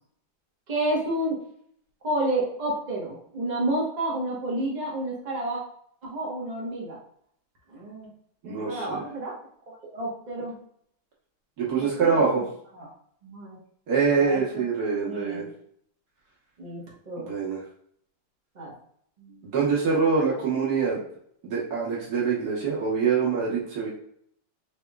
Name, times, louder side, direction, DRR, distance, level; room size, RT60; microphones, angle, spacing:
voice 1, 0.7-1.4 2.0-5.6 6.0-7.0 7.7-8.1 8.4-9.3 9.7-10.5 11.8-12.4 12.7-12.9 13.2-13.6 14.1-14.6 15.0-15.5 16.6-16.8 17.1-17.3 18.5-18.7 19.2-19.5, right 1 dB, 25° right, -5 dB, 1.1 m, -30 dB
voice 2, 8.4-9.0 11.6-12.4 13.9-15.5 17.2-17.6 19.4-21.0 21.4-23.9, right 5 dB, 55° right, -5 dB, 1.6 m, -25 dB
4.8 x 3.4 x 2.3 m, 0.66 s
omnidirectional pair, 2.1 m